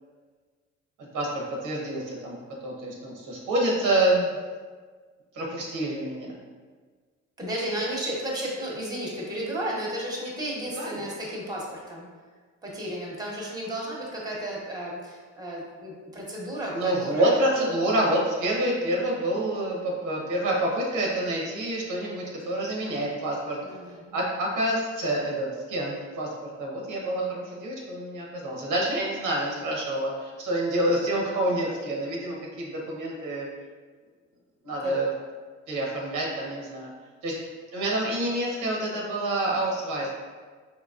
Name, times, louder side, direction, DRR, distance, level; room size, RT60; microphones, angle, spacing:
voice 1, 1.1-2.4 2.6-4.3 5.3-6.3 10.8-11.0 16.7-23.6 24.1-33.5 34.6-35.1 35.7-36.9 37.2-37.4 37.7-40.1, right 1 dB, 85° right, -2 dB, 0.9 m, -27 dB
voice 2, 7.4-12.1 12.6-17.4 23.6-24.2 34.8-34.9, right 1 dB, 10° right, -3 dB, 0.9 m, -33 dB
3.9 x 2.9 x 2.4 m, 1.5 s
cardioid pair, 90°, 30 cm